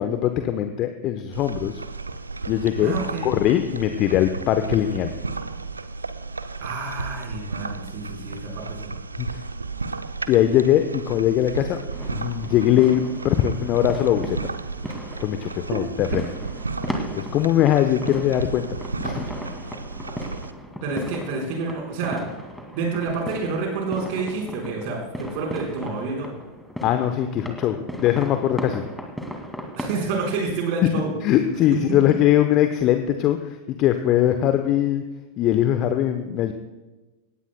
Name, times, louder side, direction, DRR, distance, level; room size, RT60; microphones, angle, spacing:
voice 1, 0.0-1.7 2.5-3.0 3.2-5.1 9.2-9.3 10.3-11.8 12.1-14.4 15.2-16.2 17.1-18.7 19.0-19.2 26.8-28.8 31.2-35.0 35.4-36.5, left 11 dB, 35° left, 8 dB, 0.9 m, -21 dB
sound 1, 1.3-20.5, right 4 dB, 80° right, 0.7 m, -33 dB
voice 2, 2.8-3.3 6.6-8.9 16.1-16.2 20.8-22.2 22.7-26.3 29.8-31.1, right 4 dB, 45° right, -1 dB, 4.4 m, -28 dB
sound 2, 11.9-30.0, equal, ahead, 2.2 m, -36 dB
18.5 x 16.5 x 2.2 m, 1.1 s
figure-of-eight pair, 90°, 0 cm